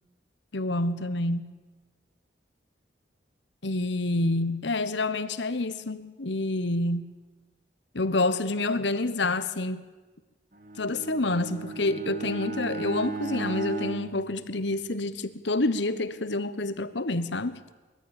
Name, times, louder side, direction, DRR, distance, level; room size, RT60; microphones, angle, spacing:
voice 1, 0.5-1.5 3.6-7.1 7.9-9.9 10.8-17.6, left 2 dB, 70° left, 1.2 m, -28 dB
Bowed string instrument, 10.5-15.2, right 3 dB, 40° right, 1.8 m, -36 dB
21.0 x 14.0 x 9.0 m
head